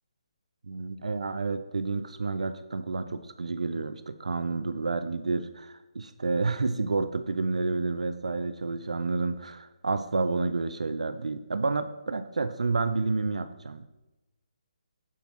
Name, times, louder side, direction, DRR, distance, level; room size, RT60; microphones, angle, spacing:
voice 1, 0.7-13.8, right 3 dB, 85° right, 11 dB, 0.4 m, -30 dB
7.1 x 5.7 x 3.1 m, 0.99 s
hypercardioid pair, 155°, 4 cm